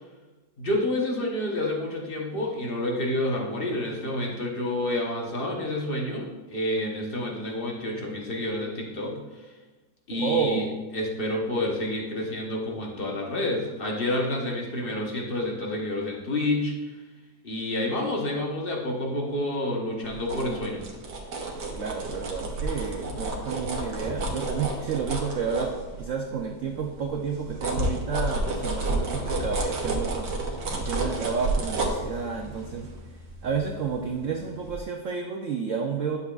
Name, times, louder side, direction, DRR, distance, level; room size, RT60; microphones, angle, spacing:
voice 1, 0.6-9.5 10.1-10.7 10.9-17.0 17.4-20.8, left 1 dB, 40° left, 0 dB, 1.0 m, -29 dB
voice 2, 10.1-10.7 21.6-36.2, right 5 dB, 85° right, 3 dB, 0.6 m, -31 dB
sound 1, 20.0-26.3 26.7-34.3 34.7-34.8, right 2 dB, 70° right, 1.6 m, -31 dB
10.0 x 6.8 x 2.4 m, 1.2 s
omnidirectional pair, 2.1 m